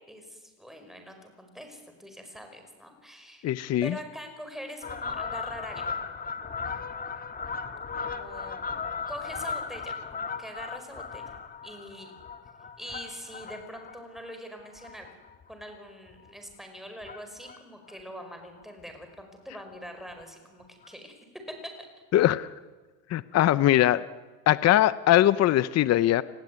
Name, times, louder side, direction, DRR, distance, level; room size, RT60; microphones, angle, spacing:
voice 1, 0.1-3.5 3.8-6.0 8.0-8.6 9.1-11.3 11.6-12.1 12.8-15.1 15.5-21.1 21.5-21.7, equal, ahead, 5 dB, 5.2 m, -43 dB
voice 2, 3.4-3.9 22.1-22.5 23.1-24.0 24.5-26.2, left 13 dB, 45° left, 16 dB, 0.8 m, -21 dB
Fowl, 4.8-15.6 16.1-16.3 17.0-17.6 17.9-18.0 18.2-18.3 18.6-18.7 19.0-19.2 20.2-20.3 20.8-20.9, left 5 dB, 25° left, 1.7 m, -37 dB
29.5 x 20.0 x 9.5 m, 1.3 s
cardioid pair, 140°, 36 cm